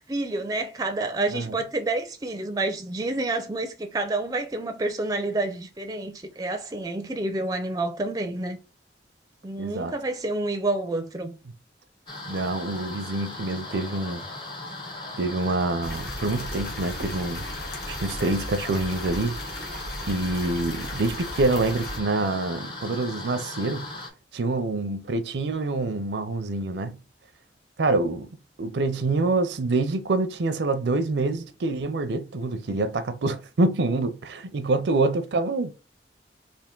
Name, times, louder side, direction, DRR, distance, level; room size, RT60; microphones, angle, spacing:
voice 1, 0.0-8.6 9.4-11.4, right 2 dB, 20° right, 0.4 m, -29 dB
voice 2, 9.6-10.0 12.3-14.2 15.2-19.4 20.1-23.9 24.3-27.0 27.8-28.3 28.6-35.7, right 2 dB, 75° right, 0.5 m, -26 dB
sound 1, 12.1-24.1, left 2 dB, 25° left, 0.7 m, -38 dB
sound 2, 15.8-22.0, left 1 dB, 65° left, 1.1 m, -36 dB
3.4 x 2.5 x 3.7 m
head